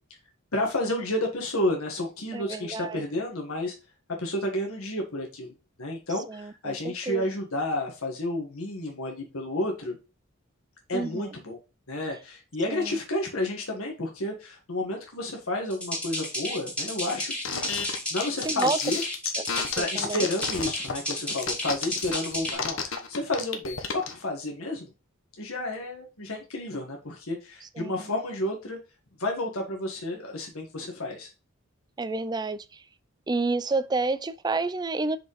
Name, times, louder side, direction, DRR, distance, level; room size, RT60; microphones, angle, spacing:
voice 1, 0.5-3.7 4.2-5.5 5.8-10.0 10.9-11.6 11.9-19.0 19.8-24.9 25.4-28.8 29.2-31.3, left 1 dB, 85° left, 1.7 m, -31 dB
voice 2, 2.3-3.0 6.3-7.2 10.9-11.3 12.7-13.0 18.4-18.8 19.8-20.3 27.8-28.1 32.0-32.8 33.3-35.2, right 3 dB, 20° right, 0.4 m, -30 dB
sound 1, 15.7-22.5, left 1 dB, 5° left, 2.1 m, -33 dB
sound 2, 17.4-24.1, left 6 dB, 65° left, 1.1 m, -31 dB
6.2 x 5.2 x 3.2 m
head